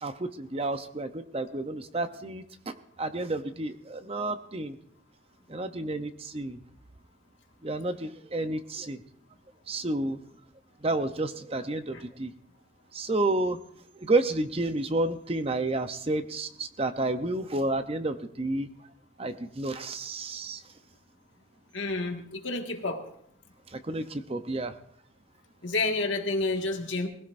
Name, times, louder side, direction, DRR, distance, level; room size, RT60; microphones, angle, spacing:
voice 1, 0.0-2.4 3.0-4.8 5.5-6.6 7.6-9.0 9.7-10.2 10.8-12.3 12.9-13.6 14.0-18.7 19.2-20.6 23.7-24.7, right 2 dB, 30° right, 9 dB, 0.7 m, -30 dB
voice 2, 21.7-23.0 25.6-27.1, left 3 dB, 75° left, 3 dB, 1.8 m, -29 dB
21.0 x 15.5 x 2.6 m, 0.67 s
head